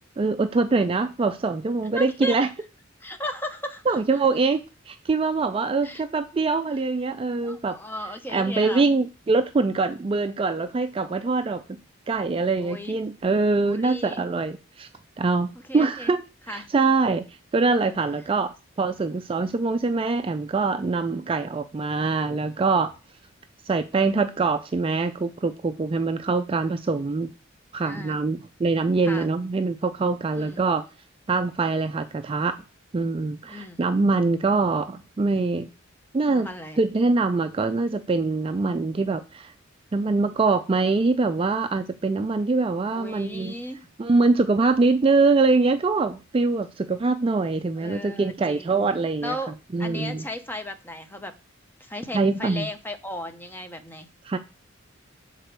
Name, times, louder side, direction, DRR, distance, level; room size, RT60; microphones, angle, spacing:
voice 1, 0.2-2.5 3.9-4.6 4.9-7.8 8.3-11.8 12.1-14.9 15.2-17.2 17.5-22.9 23.7-27.3 27.7-30.8 31.3-32.6 32.9-35.7 36.1-36.5 36.8-39.5 39.9-43.6 44.0-49.4 49.7-50.2 52.1-52.7 54.3-54.4, right 3 dB, 25° right, 9 dB, 0.3 m, -24 dB
voice 2, 1.9-2.4 3.0-4.2 5.8-6.0 7.4-8.8 12.6-13.0 13.6-14.3 15.7-16.2 16.5-16.8 27.8-28.2 29.0-29.3 30.3-30.6 33.4-33.8 36.3-36.8 42.9-43.9 47.8-48.7 49.2-51.3 51.8-54.1, equal, 10° left, 7 dB, 0.6 m, -35 dB
6.6 x 4.1 x 4.5 m, 0.30 s
head